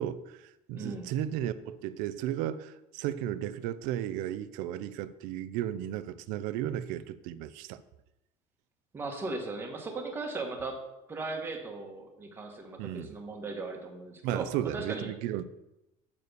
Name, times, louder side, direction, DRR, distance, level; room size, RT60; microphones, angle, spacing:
voice 1, 0.0-7.8 12.8-13.1 14.2-15.4, right 11 dB, 65° right, 0.6 m, -34 dB
voice 2, 0.7-1.1 8.9-10.8 11.1-14.5 14.7-15.1, right 3 dB, 15° right, 1.5 m, -37 dB
8.6 x 6.8 x 6.7 m
cardioid pair, 175°, 15 cm